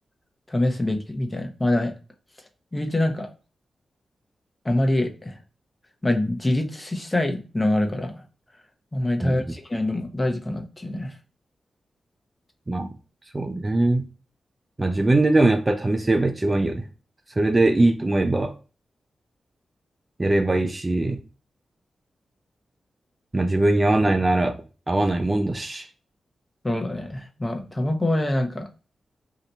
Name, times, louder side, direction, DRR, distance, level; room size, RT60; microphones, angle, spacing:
voice 1, 0.5-1.9 2.7-3.3 4.6-5.4 6.0-8.2 8.9-11.1 26.6-28.7, left 1 dB, 20° left, 3 dB, 0.7 m, -25 dB
voice 2, 13.3-14.1 14.8-16.9 17.4-18.5 20.2-21.2 23.3-25.9, right 2 dB, 25° right, 6 dB, 0.3 m, -21 dB
2.8 x 2.2 x 3.8 m, 0.34 s
cardioid pair, 70°, 0 cm